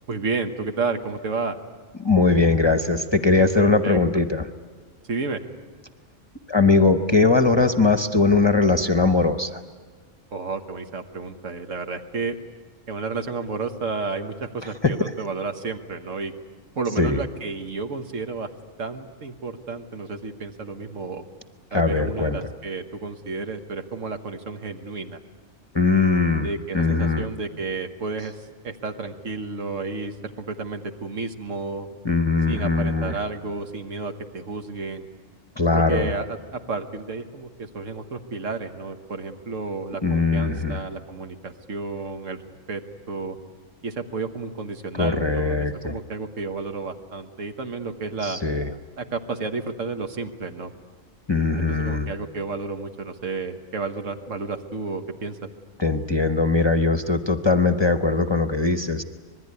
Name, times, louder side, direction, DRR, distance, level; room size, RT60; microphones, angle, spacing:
voice 1, 0.1-1.6 3.6-4.0 5.1-5.4 10.3-12.4 12.9-16.3 16.8-18.5 18.8-21.3 21.7-25.2 26.4-31.9 32.5-35.1 35.7-42.4 42.7-42.8 43.1-43.4 43.8-48.4 49.0-50.7 51.7-55.4, right 4 dB, 75° right, 6 dB, 1.8 m, -31 dB
voice 2, 2.0-4.5 6.5-9.6 14.8-14.9 17.0-17.2 21.7-22.4 25.7-26.5 26.7-27.3 32.0-33.2 35.6-36.1 40.0-40.8 45.0-46.0 48.2-48.7 51.3-52.1 55.8-59.0, left 3 dB, 25° left, 9 dB, 0.8 m, -20 dB
26.0 x 21.0 x 9.7 m, 1.4 s
omnidirectional pair, 1.3 m